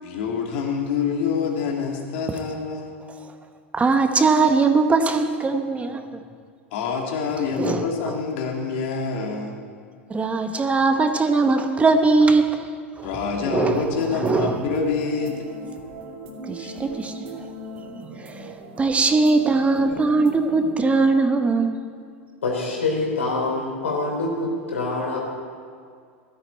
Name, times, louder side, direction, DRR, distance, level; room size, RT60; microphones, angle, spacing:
voice 1, 0.0-2.9 6.7-9.6 13.0-15.4 16.6-16.7, left 5 dB, 65° left, 1 dB, 2.3 m, -26 dB
voice 2, 3.7-6.0 7.6-7.8 10.1-12.6 13.0-13.1 13.4-13.8 14.1-14.6 16.5-17.3 18.2-18.5 18.8-21.8, right 3 dB, 20° right, 7 dB, 1.1 m, -20 dB
sound 1, 13.6-20.7, right 3 dB, 65° right, 2.4 m, -38 dB
voice 3, 22.4-25.2, left 3 dB, 85° left, -1 dB, 3.7 m, -25 dB
15.5 x 12.5 x 4.3 m, 2.1 s
hypercardioid pair, 90°, 7 cm